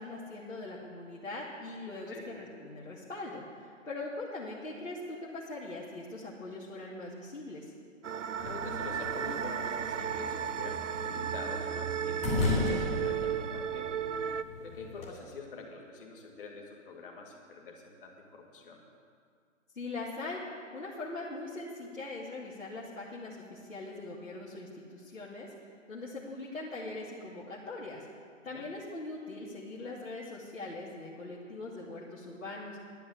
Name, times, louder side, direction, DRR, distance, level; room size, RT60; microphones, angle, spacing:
voice 1, 0.0-7.7 19.7-20.4 20.7-28.1 28.4-32.8, left 2 dB, 75° left, -6 dB, 2.2 m, -41 dB
sound 1, 8.0-14.4, right 8 dB, 65° right, 0.6 m, -34 dB
voice 2, 8.4-13.9 14.6-18.8 28.5-28.7, left 3 dB, 45° left, 0 dB, 2.2 m, -46 dB
sound 2, 8.4-15.1, left 3 dB, 15° left, 2.6 m, -36 dB
11.5 x 8.0 x 7.9 m, 2.2 s
figure-of-eight pair, 140°, 39 cm